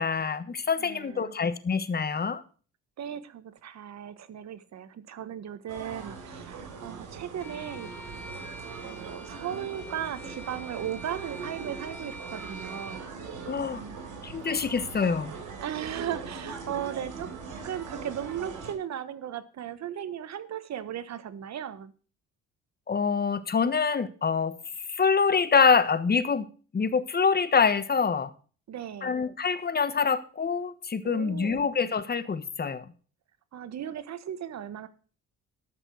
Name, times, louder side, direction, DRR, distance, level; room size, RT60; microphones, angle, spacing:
voice 1, 0.0-2.4 13.5-13.8 14.2-15.3 22.9-24.6 24.9-26.5 26.7-28.3 29.0-32.8, left 5 dB, 30° left, 13 dB, 1.3 m, -25 dB
voice 2, 0.8-1.3 3.0-7.9 8.8-13.1 15.6-17.3 17.6-21.9 28.7-29.2 31.0-31.7 33.5-34.9, right 10 dB, 60° right, 13 dB, 1.3 m, -36 dB
sound 1, 5.7-18.7, right 5 dB, 80° right, 4.1 m, -41 dB
Bowed string instrument, 7.4-13.1, right 1 dB, 5° left, 1.7 m, -45 dB
13.0 x 6.0 x 6.4 m, 0.39 s
cardioid pair, 90°, 30 cm